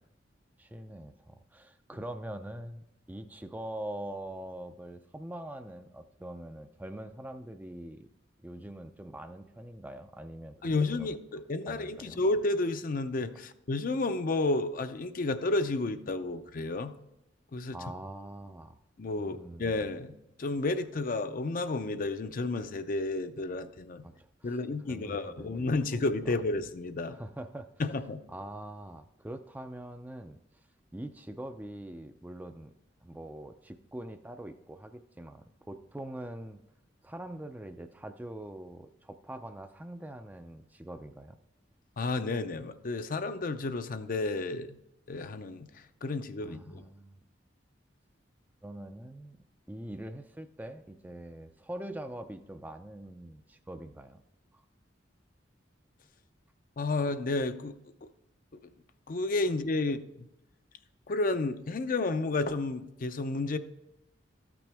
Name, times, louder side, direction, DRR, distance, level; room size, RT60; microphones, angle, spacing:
voice 1, 0.6-8.1 8.4-11.2 11.7-12.2 17.7-18.8 19.2-19.9 24.0-24.6 24.9-25.7 25.9-26.0 27.1-27.7 28.3-30.4 30.9-32.7 33.0-36.6 37.0-41.4 46.4-47.2 48.6-49.4 49.7-54.2 54.5-54.6, right 1 dB, 10° right, 0.4 m, -43 dB
voice 2, 10.6-16.9 17.5-17.8 19.0-24.1 24.4-27.2 27.8-28.2 42.0-44.8 45.1-45.7 46.0-46.9 56.8-57.7 59.1-60.3 61.1-63.6, left 2 dB, 45° left, 0.5 m, -31 dB
13.5 x 6.1 x 3.4 m
head